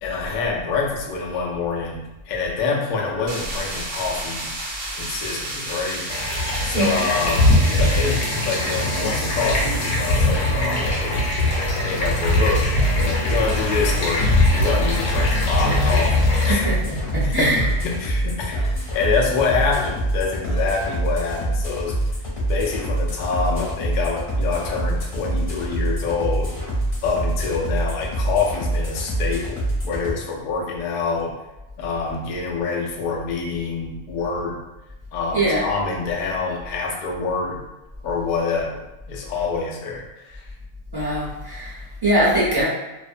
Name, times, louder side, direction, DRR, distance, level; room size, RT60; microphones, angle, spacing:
voice 1, 0.0-4.5 4.9-6.1 6.6-16.2 16.4-16.7 17.2-22.0 22.5-26.5 27.0-31.3 31.8-34.6 35.1-37.6 38.0-40.5, left 4 dB, 90° left, -2 dB, 0.4 m, -26 dB
sound 1, 3.3-10.5, right 1 dB, 55° right, 0.8 m, -32 dB
sound 2, 6.1-16.6, left 1 dB, 70° left, 1.0 m, -21 dB
sound 3, 12.8-30.1, right 1 dB, 35° left, 0.6 m, -25 dB
voice 2, 16.4-17.7 35.3-35.6 40.9-42.7, right 1 dB, 30° right, -9 dB, 0.5 m, -22 dB
2.5 x 2.1 x 2.4 m, 1.0 s
omnidirectional pair, 1.4 m